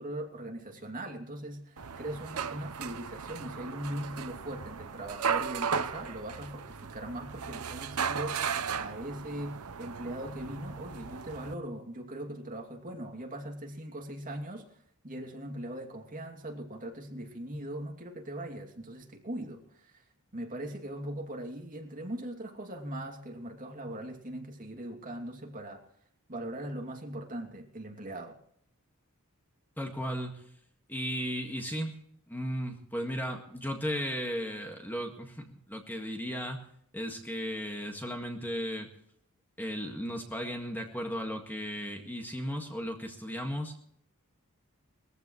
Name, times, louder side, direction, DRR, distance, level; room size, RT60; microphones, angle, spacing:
voice 1, 0.0-14.7 15.0-20.0 20.3-25.8 26.3-28.4, right 1 dB, 40° right, 1 dB, 2.7 m, -40 dB
sound 1, 1.8-11.5, right 6 dB, 75° right, 0.9 m, -36 dB
voice 2, 29.8-30.6 30.9-32.0 32.3-38.9 39.6-43.8, equal, 10° left, 2 dB, 1.8 m, -35 dB
21.5 x 15.0 x 3.2 m, 0.67 s
head